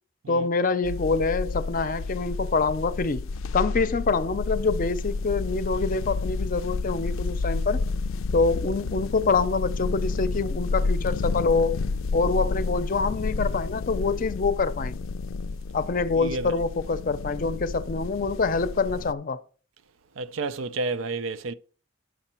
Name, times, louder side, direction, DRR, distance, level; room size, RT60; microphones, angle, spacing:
voice 1, 0.3-3.3 3.5-7.8 8.3-11.8 12.1-15.0 15.7-19.4, left 4 dB, 45° left, 0.6 m, -25 dB
sound 1, 0.8-19.1, left 3 dB, 90° left, 0.4 m, -30 dB
voice 2, 16.2-16.5 20.2-21.5, right 3 dB, 85° right, 0.5 m, -30 dB
9.9 x 6.3 x 4.4 m
head